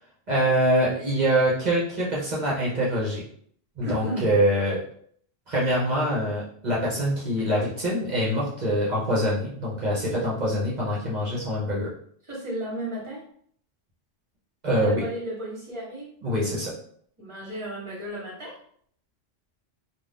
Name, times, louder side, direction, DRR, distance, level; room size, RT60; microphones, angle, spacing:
voice 1, 0.3-3.2 3.8-4.8 5.5-11.9 14.6-15.0 16.2-16.7, equal, 45° right, -6 dB, 0.8 m, -24 dB
voice 2, 3.8-4.3 12.2-13.2 14.7-16.1 17.2-18.6, right 1 dB, 30° right, -5 dB, 1.1 m, -33 dB
2.5 x 2.2 x 3.3 m, 0.62 s
omnidirectional pair, 1.1 m